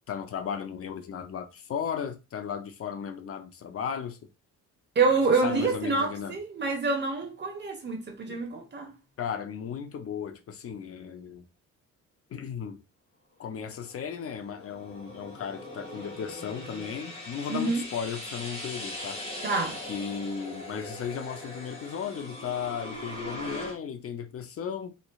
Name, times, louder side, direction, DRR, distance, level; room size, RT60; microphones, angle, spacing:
voice 1, 0.1-4.2 5.3-6.4 8.3-8.4 9.2-11.5 12.3-12.8 13.4-19.2 19.9-24.9, left 7 dB, 50° left, 0.6 m, -35 dB
voice 2, 4.9-8.9 17.5-17.8 19.4-19.8, right 3 dB, 35° right, 1.2 m, -27 dB
sound 1, 13.7-23.8, left 1 dB, 20° left, 2.0 m, -40 dB
3.7 x 3.1 x 2.3 m
cardioid pair, 90°, 30 cm